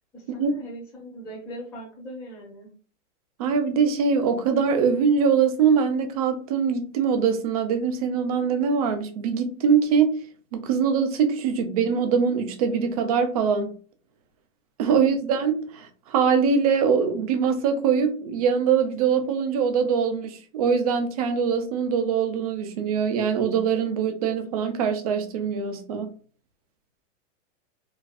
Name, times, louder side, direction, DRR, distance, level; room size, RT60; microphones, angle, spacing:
voice 1, 0.1-2.7, equal, 10° left, 0.8 m, -39 dB
voice 2, 3.4-10.2 10.5-13.7 14.8-26.1, right 6 dB, 30° right, 0.4 m, -23 dB
4.1 x 2.3 x 2.5 m
supercardioid pair, 160°, 38 cm